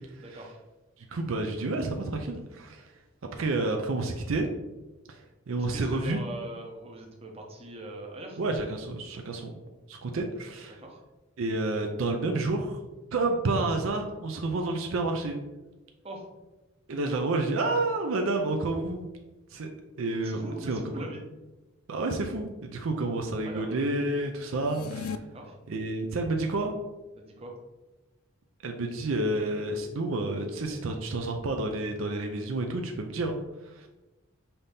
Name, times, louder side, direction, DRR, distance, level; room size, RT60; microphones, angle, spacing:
voice 1, 0.2-0.6 5.6-8.4 10.7-11.0 16.0-16.3 20.2-21.2 23.4-23.8 25.3-25.6 27.2-27.5, right 1 dB, 25° right, 1 dB, 0.7 m, -41 dB
voice 2, 1.1-2.9 3.4-4.5 5.1-5.2 5.5-6.2 8.4-9.6 9.9-10.8 11.4-12.8 13.1-15.4 16.9-19.0 19.5-19.7 20.0-21.0 21.9-25.2 25.7-26.7 28.6-33.4 33.6-33.9, right 2 dB, 65° right, 3 dB, 0.5 m, -29 dB
sound 1, 24.5-25.2, left 6 dB, 75° left, 0.3 m, -36 dB
5.7 x 2.7 x 3.4 m, 1.1 s
head